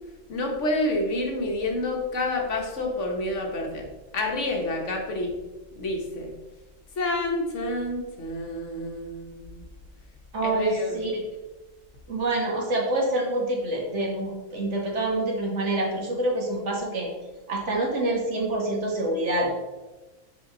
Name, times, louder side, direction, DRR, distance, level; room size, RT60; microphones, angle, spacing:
voice 1, 0.3-3.9 4.1-5.3 5.8-6.3 6.9-9.6 10.4-11.0, left 1 dB, 65° left, 1 dB, 1.4 m, -28 dB
voice 2, 10.3-11.2 12.1-17.1 17.5-19.5, right 1 dB, 60° right, -1 dB, 1.7 m, -26 dB
7.0 x 4.8 x 3.8 m, 1.1 s
omnidirectional pair, 1.4 m